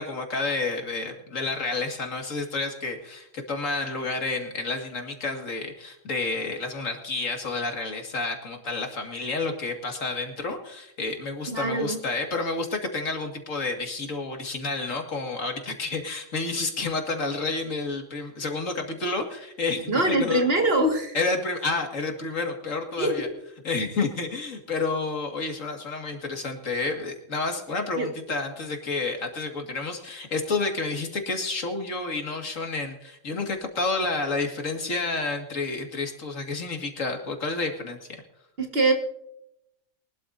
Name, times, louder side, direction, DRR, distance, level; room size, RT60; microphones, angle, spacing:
voice 1, 0.0-20.4 21.1-23.3 23.6-38.0, left 3 dB, 80° left, 3 dB, 2.3 m, -30 dB
voice 2, 11.5-12.0 19.9-21.2 23.0-23.4 28.0-28.1 38.6-38.9, right 2 dB, 50° right, 3 dB, 2.0 m, -23 dB
23.0 x 12.5 x 2.6 m, 0.79 s
omnidirectional pair, 1.3 m